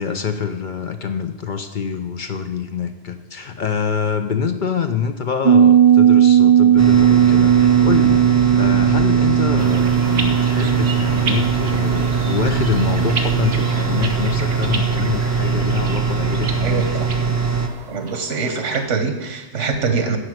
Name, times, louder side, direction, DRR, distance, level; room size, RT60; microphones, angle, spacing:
voice 1, 0.0-16.9, left 6 dB, 50° left, 7 dB, 0.7 m, -25 dB
sound 1, 5.4-13.7 14.1-14.2, right 9 dB, 35° right, 0.5 m, -16 dB
sound 2, 6.8-17.7, right 5 dB, 15° right, 0.8 m, -21 dB
sound 3, 9.6-18.9, right 4 dB, 65° right, 1.2 m, -31 dB
voice 2, 16.6-17.2 17.9-20.2, right 4 dB, 85° right, 6 dB, 1.5 m, -23 dB
9.9 x 5.4 x 7.9 m, 1.1 s
omnidirectional pair, 1.2 m